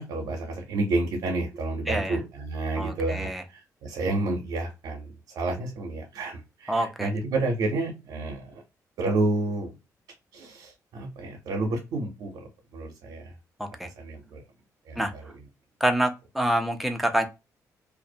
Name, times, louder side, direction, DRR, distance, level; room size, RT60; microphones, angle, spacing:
voice 1, 0.0-8.6 9.0-9.8 10.3-13.3 13.8-14.4 14.9-15.3, right 2 dB, 85° right, 0.7 m, -30 dB
voice 2, 1.9-2.2 2.8-3.4 6.7-7.1 13.6-13.9 15.0-15.1 15.8-17.2, right 1 dB, ahead, 0.4 m, -26 dB
2.5 x 2.0 x 2.5 m
cardioid pair, 125°, 7 cm